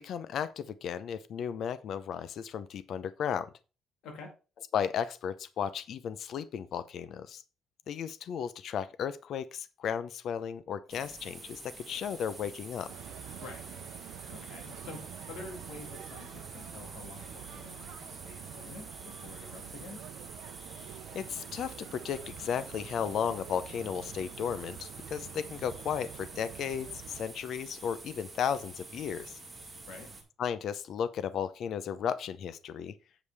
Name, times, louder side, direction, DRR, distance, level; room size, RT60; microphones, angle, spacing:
voice 1, 0.0-3.5 4.7-7.4 7.9-12.9 21.1-29.4 30.4-33.0, left 8 dB, 50° left, 0.6 m, -34 dB
sound 1, 10.9-30.2, right 3 dB, 10° right, 2.3 m, -48 dB
sound 2, 12.9-27.2, right 12 dB, 90° right, 0.6 m, -47 dB
voice 2, 14.3-20.0 29.9-30.1, left 3 dB, 70° left, 2.1 m, -48 dB
8.4 x 5.4 x 4.7 m
cardioid pair, 175°, 0 cm